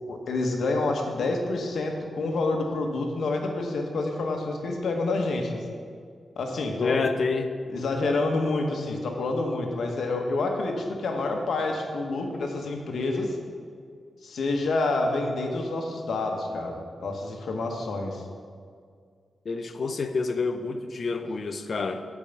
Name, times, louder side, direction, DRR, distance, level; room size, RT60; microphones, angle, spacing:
voice 1, 0.1-5.6 6.4-7.0 7.7-13.4 14.2-18.2, left 2 dB, 75° left, 2 dB, 1.2 m, -28 dB
voice 2, 6.8-7.5 19.4-22.1, left 4 dB, 50° left, 8 dB, 0.5 m, -28 dB
8.6 x 4.8 x 7.0 m, 2.1 s
wide cardioid pair, 155°, 0 cm